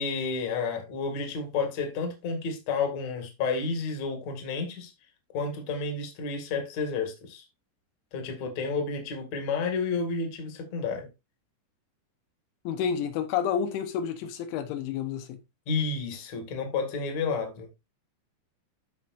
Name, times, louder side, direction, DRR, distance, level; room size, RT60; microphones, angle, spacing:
voice 1, 0.0-4.9 5.3-7.4 8.1-11.1 15.7-17.8, left 4 dB, 45° left, 2.6 m, -31 dB
voice 2, 12.6-15.4, left 8 dB, 80° left, 3.4 m, -30 dB
14.5 x 5.3 x 2.6 m
omnidirectional pair, 5.5 m